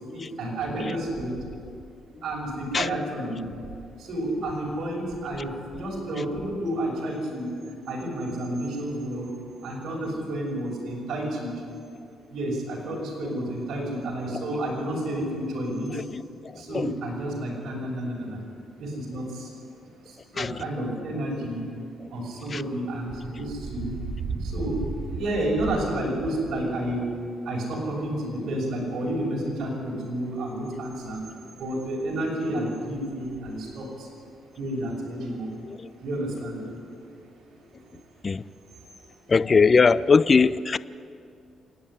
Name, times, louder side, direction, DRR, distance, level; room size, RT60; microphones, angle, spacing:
voice 1, 0.1-1.4 2.2-3.5 4.0-7.5 7.9-9.3 9.6-11.5 12.3-16.0 16.6-18.4 18.8-19.5 20.3-21.6 22.1-23.9 24.4-24.8 25.1-27.0 27.5-31.2 31.6-34.1 34.6-35.5 36.0-36.6, right 1 dB, 60° right, -3 dB, 6.1 m, -30 dB
voice 2, 39.3-40.8, left 5 dB, 35° left, 18 dB, 0.5 m, -19 dB
27.5 x 9.6 x 10.0 m, 2.4 s
cardioid pair, 90°, 0 cm